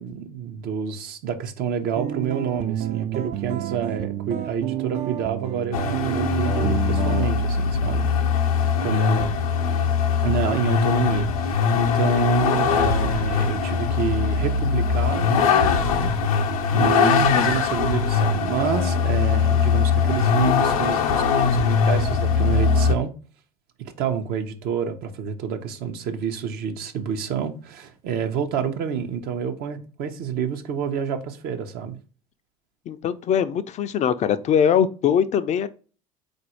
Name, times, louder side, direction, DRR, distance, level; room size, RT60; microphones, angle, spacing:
voice 1, 0.0-8.1 8.8-9.4 10.2-23.1 24.0-32.0, right 7 dB, 55° right, 0.8 m, -28 dB
sound 1, 2.0-7.3, right 12 dB, 40° right, 0.4 m, -29 dB
Vehicle, 5.7-23.0, left 6 dB, 85° left, 0.6 m, -21 dB
voice 2, 32.9-35.7, left 8 dB, 40° left, 0.4 m, -21 dB
4.1 x 2.6 x 4.4 m
hypercardioid pair, 75°, 18 cm